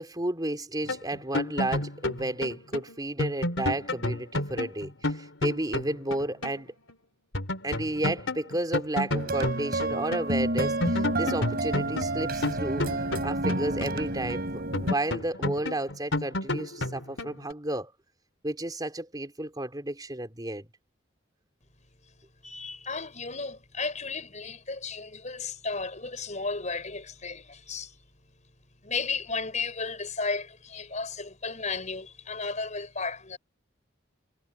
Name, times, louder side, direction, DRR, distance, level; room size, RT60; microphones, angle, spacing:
voice 1, 0.0-6.7 7.6-12.9 13.2-17.9 18.4-20.7, right 1 dB, 20° right, 3.9 m, -32 dB
sound 1, 0.9-6.6 6.9-7.0 7.3-10.3 10.6-14.3 14.7-17.5, left 1 dB, 80° left, 3.7 m, -31 dB
sound 2, 9.1-14.9, right 2 dB, 50° right, 4.7 m, -30 dB
voice 2, 22.4-28.0 28.8-33.4, left 4 dB, 40° left, 6.0 m, -34 dB
head